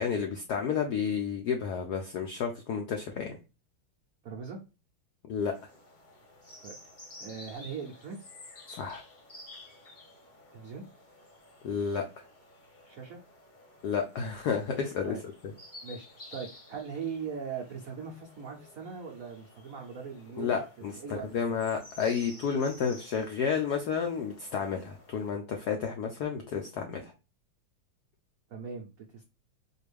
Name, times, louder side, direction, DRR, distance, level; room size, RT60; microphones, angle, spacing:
voice 1, 0.0-3.4 5.3-5.5 8.8-9.0 11.6-12.0 13.8-15.1 20.4-27.1, left 6 dB, 85° left, 4 dB, 0.9 m, -31 dB
voice 2, 4.2-4.6 6.6-6.7 7.2-8.3 10.5-10.8 12.8-13.2 15.0-15.2 15.8-20.6 21.0-21.6 28.5-29.3, right 6 dB, 80° right, 0 dB, 0.7 m, -40 dB
sound 1, 5.4-25.3, left 1 dB, 35° left, 0.8 m, -53 dB
4.3 x 2.4 x 3.3 m, 0.30 s
omnidirectional pair, 2.3 m